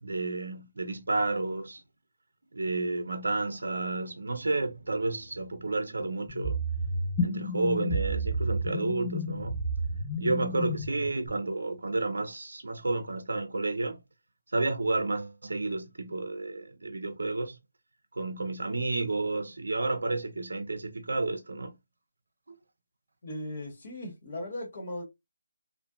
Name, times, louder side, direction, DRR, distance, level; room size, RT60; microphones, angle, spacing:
voice 1, 0.0-1.8 2.5-6.6 7.2-9.6 10.2-14.0 14.5-17.6 18.1-21.7 22.5-22.6, right 2 dB, 75° right, 0.5 m, -31 dB
sound 1, 6.3-11.3, equal, 5° left, 1.0 m, -31 dB
voice 2, 23.2-25.0, left 1 dB, 50° left, 1.1 m, -38 dB
2.6 x 2.1 x 2.3 m
figure-of-eight pair, 155°, 0 cm